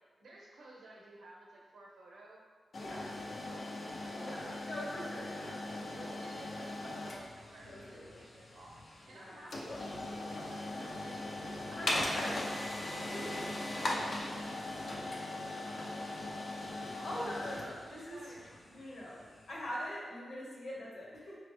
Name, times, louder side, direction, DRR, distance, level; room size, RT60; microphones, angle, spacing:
voice 1, 0.2-2.4 2.9-3.6 3.9-4.8 5.4-8.8 9.1-18.4, right 1 dB, 90° right, -3 dB, 0.8 m, -54 dB
sound 1, 2.7-19.6, left 1 dB, 60° left, 0.6 m, -40 dB
voice 2, 4.2-6.1 7.6-8.2 9.1-9.5 11.8-12.4 13.0-13.4 17.0-18.2 18.7-21.4, equal, 80° left, -6 dB, 1.2 m, -43 dB
4.0 x 3.1 x 3.2 m, 1.5 s
cardioid pair, 60°, 0 cm